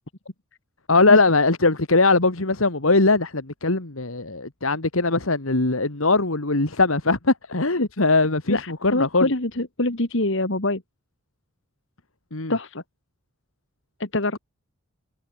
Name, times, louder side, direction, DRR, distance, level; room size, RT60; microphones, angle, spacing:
voice 1, 0.9-9.3 12.3-12.5, left 3 dB, 80° left, 2.3 m, -20 dB
voice 2, 8.5-10.8 12.5-12.8 14.0-14.4, left 2 dB, 60° left, 2.6 m, -25 dB
head